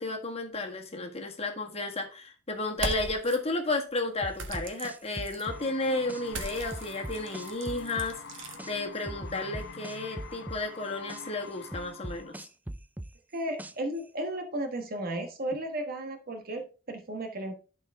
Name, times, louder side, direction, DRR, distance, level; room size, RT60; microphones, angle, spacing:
voice 1, 0.0-12.5, left 2 dB, 35° left, 1.7 m, -33 dB
sound 1, 2.7-3.4 4.4-5.5 6.3-8.6, right 2 dB, 85° right, 1.6 m, -38 dB
sound 2, 4.2-6.2 6.7-8.7 9.1-11.2 11.7-14.0, right 1 dB, 10° right, 0.4 m, -40 dB
sound 3, 5.5-12.4, left 5 dB, 65° left, 0.9 m, -46 dB
voice 2, 13.3-17.5, right 1 dB, 50° right, 1.3 m, -34 dB
12.0 x 4.6 x 3.6 m
head